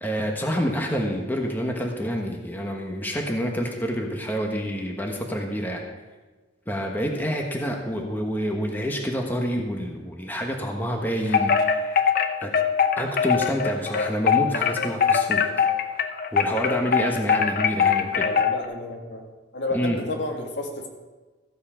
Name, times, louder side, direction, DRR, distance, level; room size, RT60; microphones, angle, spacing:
voice 1, 0.0-5.8 6.7-11.8 12.4-12.5 13.0-15.5 16.3-18.3 19.7-20.0, equal, 10° left, 1 dB, 1.2 m, -28 dB
Wind chime, 11.3-18.6, left 7 dB, 50° left, 0.8 m, -22 dB
voice 2, 18.1-19.3 19.5-20.9, left 2 dB, 65° left, 2 dB, 1.9 m, -31 dB
14.5 x 8.4 x 5.0 m, 1.3 s
head